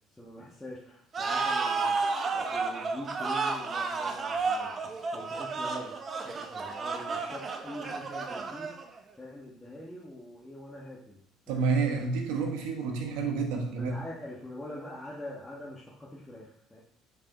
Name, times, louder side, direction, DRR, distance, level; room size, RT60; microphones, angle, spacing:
voice 1, 0.1-6.0 6.2-11.2 11.5-11.7 13.7-16.8, left 1 dB, 10° left, -6 dB, 1.4 m, -44 dB
sound 1, 1.1-9.0, right 4 dB, 40° right, 0.9 m, -32 dB
voice 2, 11.5-13.9, right 4 dB, 80° right, 2 dB, 1.2 m, -29 dB
5.6 x 5.0 x 3.8 m, 0.65 s
supercardioid pair, 80°, 0 cm